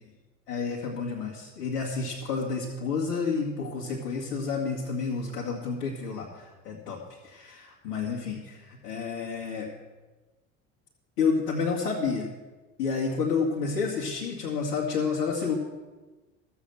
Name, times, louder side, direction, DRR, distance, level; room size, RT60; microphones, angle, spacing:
voice 1, 0.5-9.7 11.2-12.3 12.8-15.5, left 5 dB, 60° left, -4 dB, 2.1 m, -30 dB
13.5 x 7.1 x 7.8 m, 1.2 s
figure-of-eight pair, 70°, 40 cm